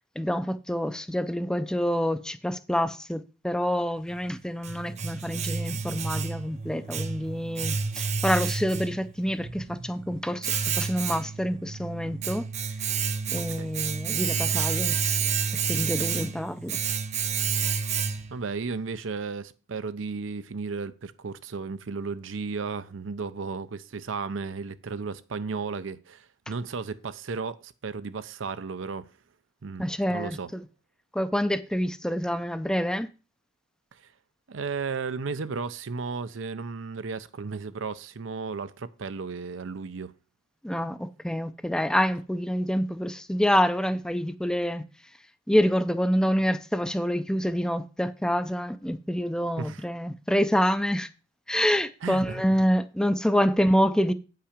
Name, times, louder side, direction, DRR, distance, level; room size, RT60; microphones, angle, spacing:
voice 1, 0.2-10.5 10.8-12.5 13.3-15.2 15.7-16.8 29.8-30.6 31.1-33.1 40.6-44.8 45.5-51.1 51.5-54.1, equal, 5° left, 0.4 m, -27 dB
Domestic sounds home sounds, 4.1-18.5, right 6 dB, 35° right, 0.6 m, -30 dB
voice 2, 13.3-13.7 16.1-16.2 18.3-29.1 29.6-30.5 33.9-34.0 34.5-40.1 49.6-49.8 52.0-52.6, right 4 dB, 75° right, 0.6 m, -34 dB
8.6 x 5.7 x 5.0 m
head